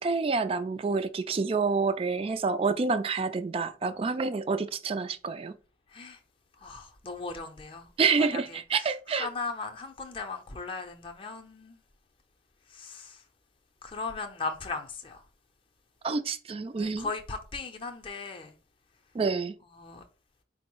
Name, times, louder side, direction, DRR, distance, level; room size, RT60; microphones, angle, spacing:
voice 1, 0.0-5.5 8.0-9.3 16.0-17.1 19.1-19.5, right 4 dB, 30° right, 0.3 m, -28 dB
voice 2, 6.6-7.9 8.3-11.8 12.7-13.2 13.8-15.2 16.8-18.6 19.7-20.0, left 4 dB, 30° left, 0.5 m, -38 dB
4.5 x 2.0 x 4.5 m
head